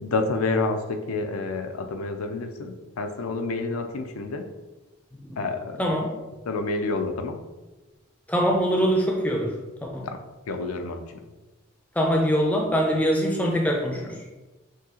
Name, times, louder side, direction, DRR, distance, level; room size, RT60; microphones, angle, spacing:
voice 1, 0.0-4.5 5.4-5.8 6.5-7.5 10.0-10.2 10.5-11.2, left 3 dB, 80° left, 6 dB, 0.5 m, -29 dB
voice 2, 5.8-6.1 8.3-10.1 12.0-14.2, equal, 5° left, 0 dB, 0.5 m, -23 dB
6.2 x 2.7 x 2.8 m, 1.1 s
head